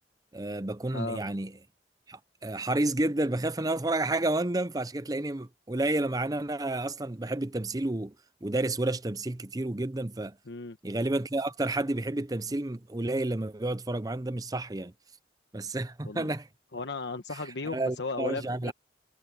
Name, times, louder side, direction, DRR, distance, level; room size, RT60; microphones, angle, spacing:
voice 1, 0.3-1.6 2.1-8.2 8.4-10.4 10.8-14.9 15.5-16.5 17.3-18.7, right 2 dB, 20° right, 0.6 m, -30 dB
voice 2, 10.5-10.8 16.0-16.3 16.7-18.7, left 3 dB, 80° left, 1.1 m, -35 dB
head